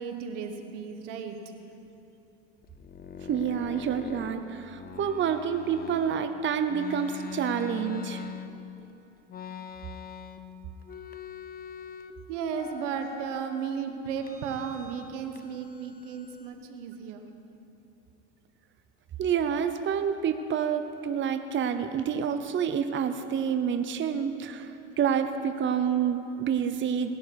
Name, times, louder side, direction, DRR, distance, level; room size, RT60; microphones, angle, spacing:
voice 1, 0.0-1.4 12.3-17.3, right 6 dB, 80° right, 6 dB, 1.4 m, -34 dB
sound 1, 2.6-6.2 6.7-8.8 9.3-10.5 10.8-12.1 12.5-13.7 14.2-15.1 15.4-16.5, left 7 dB, 25° left, 0.7 m, -42 dB
voice 2, 3.3-8.2 19.2-27.1, right 7 dB, 30° right, 8 dB, 0.8 m, -28 dB
19.0 x 11.0 x 4.7 m, 2.9 s
supercardioid pair, 95°, 36 cm